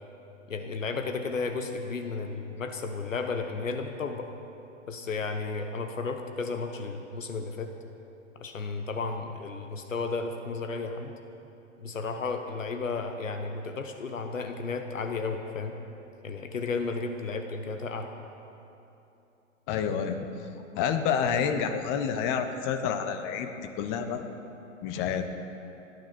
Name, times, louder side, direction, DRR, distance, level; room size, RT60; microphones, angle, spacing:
voice 1, 0.5-4.3 4.9-7.7 8.4-11.1 11.8-15.8 16.2-18.1, left 4 dB, 75° left, 6 dB, 1.3 m, -33 dB
voice 2, 19.7-20.2 20.7-24.3 24.8-25.3, left 7 dB, 30° left, 7 dB, 1.2 m, -28 dB
29.5 x 10.0 x 4.4 m, 2.9 s
figure-of-eight pair, 110°, 39 cm